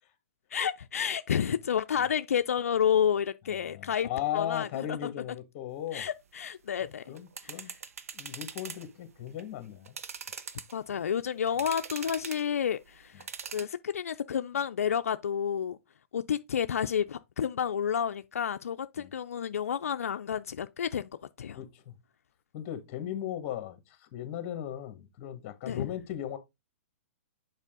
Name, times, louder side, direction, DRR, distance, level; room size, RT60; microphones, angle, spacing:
voice 1, 0.5-5.1 5.9-7.0 10.7-13.2 13.5-15.8 16.1-21.1 21.4-21.6 25.7-25.9, left 8 dB, 85° left, 0.4 m, -30 dB
voice 2, 3.5-6.1 6.8-7.7 8.1-9.9 19.0-19.1 21.5-21.9 22.5-26.4, left 11 dB, 35° left, 1.5 m, -37 dB
sound 1, 7.1-8.9 9.3-9.4 9.9-11.0 11.5-12.5 13.2-13.7, right 6 dB, 80° right, 0.9 m, -41 dB
7.3 x 4.8 x 3.7 m
hypercardioid pair, 145°, 8 cm